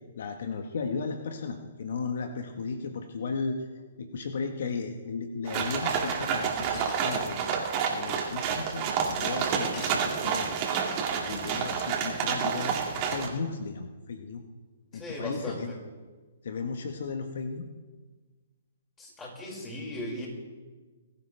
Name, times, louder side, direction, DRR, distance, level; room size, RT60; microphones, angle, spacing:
voice 1, 0.1-3.7 4.0-7.4 7.9-10.6 11.2-14.4 14.9-15.7 16.4-17.7, left 4 dB, 65° left, 5 dB, 1.3 m, -35 dB
sound 1, 5.5-13.3, right 7 dB, 35° right, 2.4 m, -29 dB
Shatter, 6.7-7.3 9.7-10.8, left 3 dB, 35° left, 5.4 m, -44 dB
voice 2, 14.9-15.6 19.0-20.3, left 1 dB, 15° left, -3 dB, 5.8 m, -37 dB
21.5 x 13.5 x 3.4 m, 1.4 s
hypercardioid pair, 135°, 0 cm